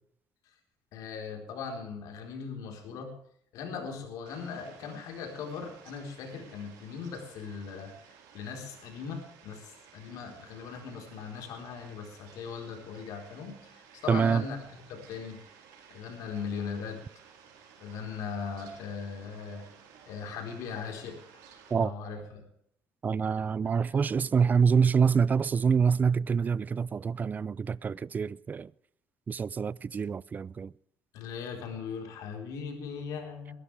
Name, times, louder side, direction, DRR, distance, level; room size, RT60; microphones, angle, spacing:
voice 1, 0.9-3.1 3.5-15.4 15.9-17.0 17.8-19.7 20.1-21.2 21.7-22.4 31.1-33.5, left 6 dB, 75° left, 4.1 m, -39 dB
Fowl, 4.3-21.7, right 7 dB, 85° right, 4.0 m, -55 dB
voice 2, 14.1-14.5 21.7-21.9 23.0-28.7 29.3-30.7, right 6 dB, 30° right, 0.4 m, -26 dB
21.0 x 13.0 x 3.4 m
cardioid pair, 110°, 6 cm